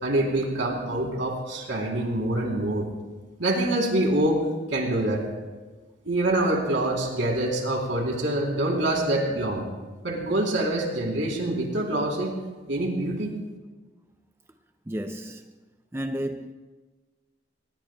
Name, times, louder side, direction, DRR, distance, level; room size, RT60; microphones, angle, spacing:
voice 1, 0.0-2.9 3.4-4.5 4.7-5.3 6.1-9.7 10.0-12.3 12.7-13.3, right 1 dB, 75° right, 3.5 m, -25 dB
voice 2, 14.9-15.5 15.9-16.5, equal, 15° right, 0.4 m, -32 dB
24.0 x 20.0 x 2.3 m
head